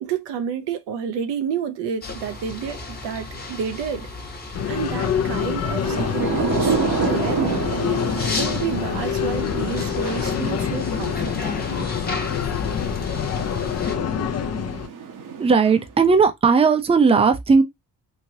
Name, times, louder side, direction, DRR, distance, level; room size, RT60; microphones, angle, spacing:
voice 1, 0.0-4.1 4.7-7.7 8.3-11.6, right 7 dB, 80° right, 0.7 m, -30 dB
sound 1, 2.0-13.9, left 2 dB, 25° left, 1.0 m, -34 dB
sound 2, 4.5-14.9, left 8 dB, 40° left, 0.5 m, -26 dB
Thunder / Rain, 5.5-16.1, right 6 dB, 50° right, 0.8 m, -30 dB
voice 2, 15.4-17.6, right 5 dB, 15° right, 0.5 m, -16 dB
3.1 x 2.7 x 2.7 m
cardioid pair, 95°, 41 cm